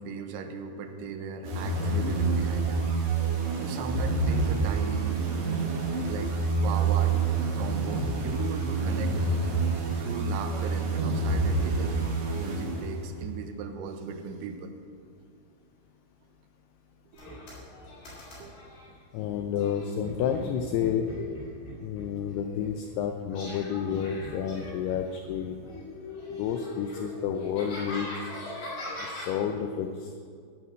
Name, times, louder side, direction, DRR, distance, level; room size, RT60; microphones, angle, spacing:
voice 1, 0.0-3.0 3.6-5.2 6.1-7.2 7.6-9.4 10.0-14.7 15.2-15.3 17.1-17.2 18.4-18.5 19.4-19.5, right 5 dB, 80° right, 6 dB, 3.2 m, -37 dB
sound 1, 1.4-13.2, right 3 dB, 60° right, 2.8 m, -27 dB
sound 2, 17.1-18.9 19.6-22.9 23.3-25.4 25.6-29.3, left 2 dB, 55° left, 5.5 m, -40 dB
voice 2, 19.1-21.1 21.8-25.7 26.3-28.3 28.6-28.7 29.0-30.2, left 8 dB, 90° left, 6 dB, 2.3 m, -30 dB
12.5 x 7.3 x 7.6 m, 2.2 s
omnidirectional pair, 5.4 m